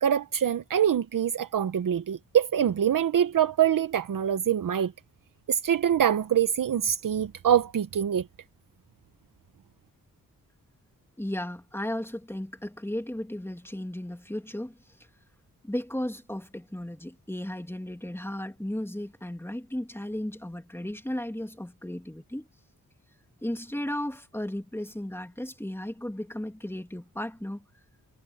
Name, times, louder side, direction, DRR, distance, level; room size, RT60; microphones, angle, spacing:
voice 1, 0.0-4.9 5.5-8.2, right 9 dB, 75° right, 0.9 m, -24 dB
voice 2, 11.2-14.8 15.6-22.5 23.4-27.6, left 1 dB, 5° left, 2.6 m, -35 dB
cardioid pair, 55°, 33 cm